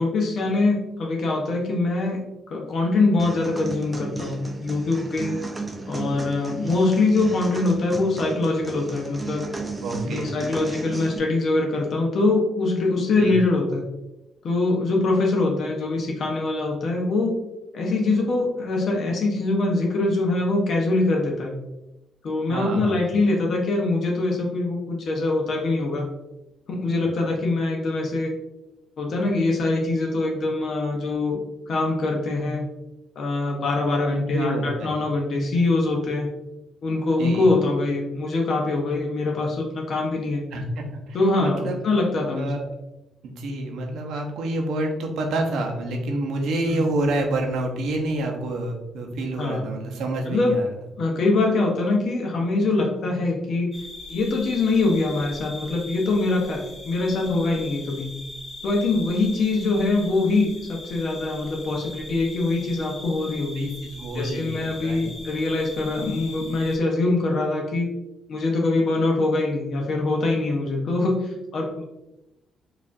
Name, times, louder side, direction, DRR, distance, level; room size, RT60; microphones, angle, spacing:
voice 1, 0.0-2.2 2.5-5.4 5.9-9.5 10.0-13.8 14.4-17.4 17.7-21.6 22.2-26.1 26.7-28.3 29.0-31.4 31.7-32.7 33.2-36.3 36.8-40.4 41.1-42.5 46.7-46.8 49.4-49.7 50.3-50.6 51.0-53.7 54.1-58.1 58.6-63.7 64.1-67.9 68.3-71.8, left 2 dB, 60° left, 0 dB, 0.7 m, -23 dB
sound 1, 3.2-11.2, right 3 dB, 15° right, 0.5 m, -34 dB
voice 2, 9.8-10.4 13.2-13.4 22.5-23.0 27.1-27.3 34.1-34.9 37.2-37.5 40.5-41.8 42.4-42.7 43.2-50.7 63.6-65.1, right 1 dB, 80° right, 2 dB, 0.7 m, -28 dB
sound 2, 53.7-66.8, left 2 dB, 25° left, 1.0 m, -40 dB
4.7 x 2.5 x 2.5 m, 0.93 s
cardioid pair, 100°, 0 cm